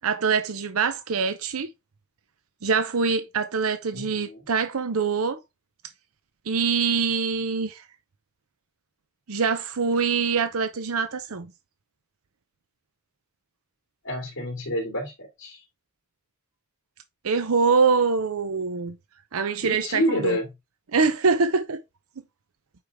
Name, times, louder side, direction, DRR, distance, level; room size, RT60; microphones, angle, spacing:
voice 1, 0.0-1.7 2.6-5.4 6.5-7.8 9.3-11.5 17.2-18.9 19.3-20.4 20.9-21.8, right 5 dB, 90° right, 0.7 m, -24 dB
voice 2, 3.9-4.4 14.0-15.7 19.6-20.5, equal, 60° left, 2.5 m, -28 dB
8.2 x 5.0 x 3.5 m
head